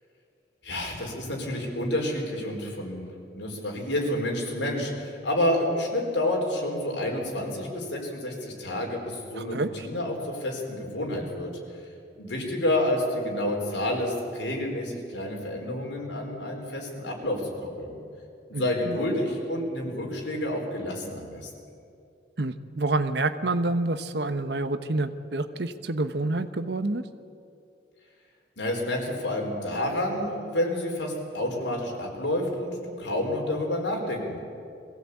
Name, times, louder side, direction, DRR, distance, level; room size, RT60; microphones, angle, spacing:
voice 1, 0.6-3.1 3.3-11.5 12.1-18.0 18.5-21.5 28.6-34.4, left 1 dB, 85° left, 0 dB, 4.6 m, -29 dB
voice 2, 9.4-9.9 18.5-19.0 22.4-27.0, right 2 dB, 65° right, 11 dB, 1.0 m, -28 dB
22.0 x 16.0 x 8.5 m, 2.5 s
head